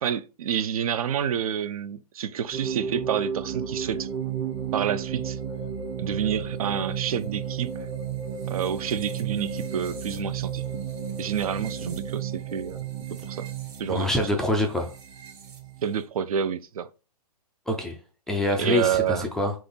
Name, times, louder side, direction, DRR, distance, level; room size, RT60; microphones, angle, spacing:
voice 1, 0.0-4.1 4.7-5.4 6.0-7.7 8.5-10.6 11.2-13.5 13.8-14.1 15.8-16.9 18.6-19.3, right 8 dB, 65° right, 0.5 m, -28 dB
sound 1, 2.5-16.1, right 7 dB, 20° right, 0.7 m, -33 dB
voice 2, 13.9-14.9 17.7-18.0 18.3-19.5, left 1 dB, ahead, 0.3 m, -25 dB
3.8 x 2.9 x 3.9 m
hypercardioid pair, 140°, 20 cm